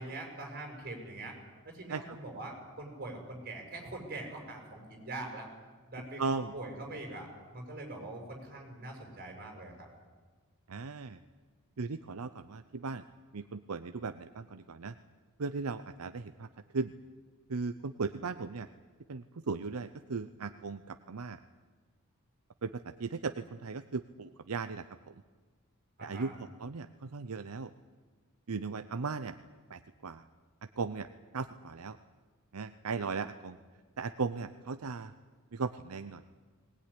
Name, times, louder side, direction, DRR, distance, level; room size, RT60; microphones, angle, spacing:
voice 1, 0.0-1.3 1.7-5.5 5.9-9.9 26.0-26.3, right 2 dB, 45° right, 2 dB, 6.3 m, -43 dB
voice 2, 6.2-6.5 10.7-11.2 11.8-13.0 13.3-14.9 15.4-16.5 16.7-16.9 17.5-18.7 19.1-21.4 22.6-25.1 26.0-27.7 28.5-29.4 29.7-30.2 30.8-31.1 31.3-32.0 32.5-33.6 34.0-35.1 35.5-36.2, right 4 dB, 75° right, 10 dB, 0.7 m, -37 dB
20.5 x 19.0 x 10.0 m, 1.5 s
head